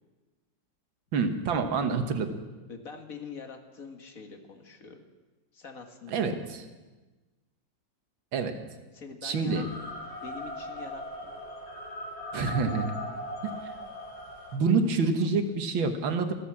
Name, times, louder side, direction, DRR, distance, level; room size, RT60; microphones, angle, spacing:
voice 1, 1.1-2.3 6.1-6.6 8.3-8.6 9.2-9.6 12.3-12.9 13.4-13.7 14.5-16.3, right 4 dB, 90° right, 7 dB, 2.0 m, -27 dB
voice 2, 2.7-5.0 5.5-6.4 8.9-11.3 14.7-15.3, left 5 dB, 45° left, 4 dB, 2.0 m, -45 dB
sound 1, 9.5-14.6, left 1 dB, 80° left, 3.0 m, -39 dB
14.5 x 13.5 x 7.4 m, 1.2 s
omnidirectional pair, 2.1 m